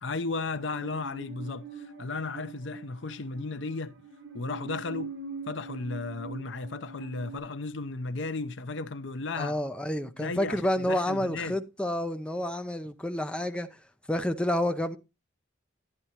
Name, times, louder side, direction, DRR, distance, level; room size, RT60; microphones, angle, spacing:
voice 1, 0.0-1.6 2.0-4.0 4.3-5.1 5.5-9.6 10.2-11.6, left 3 dB, 70° left, 0.7 m, -34 dB
Musical instrument, 0.5-7.4, right 3 dB, 75° right, 3.1 m, -43 dB
voice 2, 9.4-13.7 14.1-15.0, left 1 dB, 5° left, 0.5 m, -29 dB
11.0 x 10.0 x 2.9 m
head